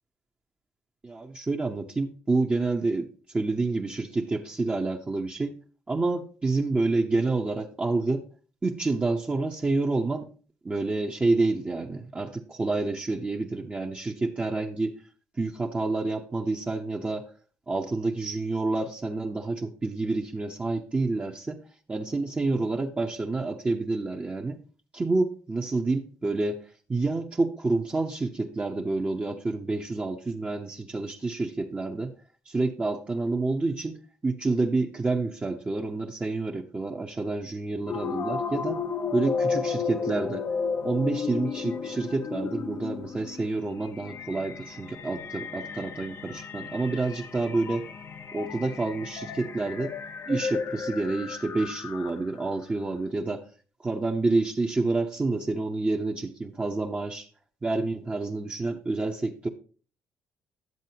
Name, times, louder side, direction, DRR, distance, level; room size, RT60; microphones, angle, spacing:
voice 1, 1.0-5.6 5.9-8.2 8.6-10.3 10.6-15.0 15.4-17.3 17.7-21.6 21.9-24.6 24.9-26.6 26.9-32.1 32.5-34.0 34.2-38.8 39.1-40.4 40.8-47.9 48.3-49.9 50.3-53.4 53.8-57.3 57.6-59.5, right 3 dB, 25° right, 0 dB, 0.9 m, -28 dB
sound 1, 37.9-52.4, left 5 dB, 50° left, 0.7 m, -33 dB
10.5 x 7.5 x 2.9 m, 0.38 s
supercardioid pair, 70°, 6 cm